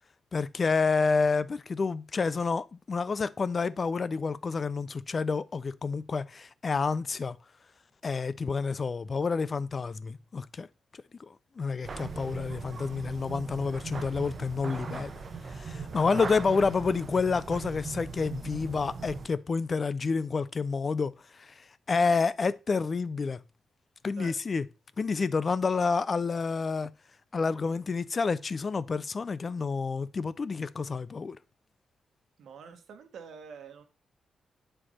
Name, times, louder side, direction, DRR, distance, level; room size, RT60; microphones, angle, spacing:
voice 1, 0.3-7.4 8.0-10.7 11.6-15.1 15.5-21.5 21.9-23.4 24.0-24.7 25.0-26.9 27.3-31.4, left 4 dB, 35° left, 0.3 m, -29 dB
sound 1, 11.8-19.3, right 4 dB, 40° right, 0.8 m, -39 dB
voice 2, 32.4-33.9, right 6 dB, 80° right, 1.1 m, -47 dB
7.5 x 4.5 x 4.2 m
wide cardioid pair, 140°, 0 cm